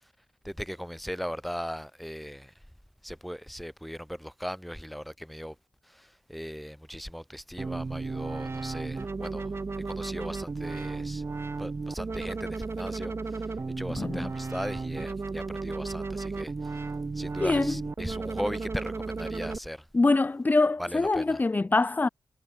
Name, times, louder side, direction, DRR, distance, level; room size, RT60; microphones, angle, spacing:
voice 1, 0.4-2.5 3.0-5.6 5.9-9.5 9.9-11.2 11.6-13.5 13.8-16.8 17.2-19.8 20.8-21.4, equal, ahead, 3.8 m, -38 dB
sound 1, 7.6-19.6, right 3 dB, 35° right, 1.6 m, -34 dB
voice 2, 14.0-14.3 17.4-17.8 19.9-22.1, left 3 dB, 25° left, 0.8 m, -24 dB
wide cardioid pair, 160°, 7 cm